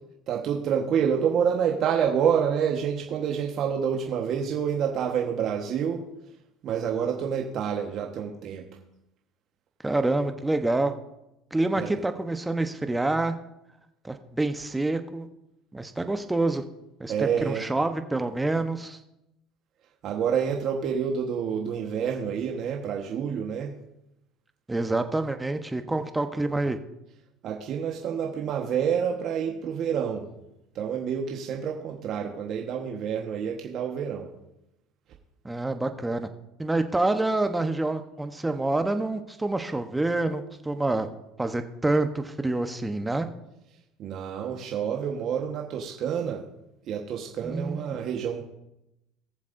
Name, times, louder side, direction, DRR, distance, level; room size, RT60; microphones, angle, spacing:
voice 1, 0.3-6.1 6.6-8.6 11.7-11.9 17.1-17.7 20.0-23.8 27.4-30.3 30.7-34.3 44.0-46.5 46.9-48.4, right 7 dB, 55° right, 0 dB, 1.3 m, -28 dB
voice 2, 9.8-10.9 11.5-13.3 14.0-15.3 15.7-16.6 17.0-19.0 24.7-26.8 35.4-36.3 36.6-41.1 41.4-43.3 47.4-48.0, right 2 dB, 10° right, 7 dB, 1.0 m, -27 dB
19.5 x 7.2 x 2.7 m, 0.88 s
supercardioid pair, 85°, 0 cm